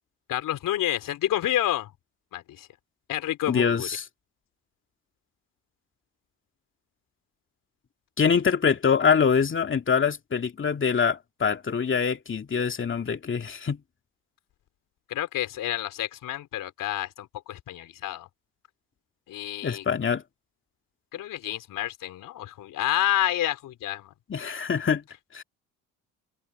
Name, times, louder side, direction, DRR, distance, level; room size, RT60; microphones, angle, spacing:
voice 1, 0.3-1.9 2.3-2.7 3.1-3.9 15.1-18.3 19.3-19.8 21.1-24.1, left 13 dB, 65° left, 4.0 m, -29 dB
voice 2, 3.5-4.0 8.2-13.8 19.6-20.2 24.3-25.0 25.3-25.4, left 6 dB, 35° left, 2.4 m, -24 dB
hypercardioid pair, 65°, 35 cm